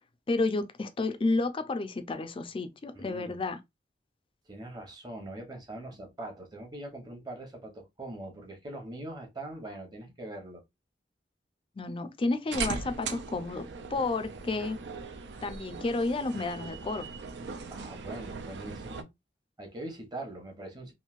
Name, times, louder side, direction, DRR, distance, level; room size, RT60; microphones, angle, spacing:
voice 1, 0.3-3.6 11.8-14.8 15.4-17.1, left 3 dB, 30° left, 0.4 m, -31 dB
voice 2, 2.9-3.4 4.5-10.6 17.7-19.1 19.6-20.9, right 1 dB, 25° right, 0.9 m, -42 dB
sound 1, 12.5-19.0, right 4 dB, 75° right, 0.4 m, -39 dB
3.1 x 2.6 x 2.4 m
head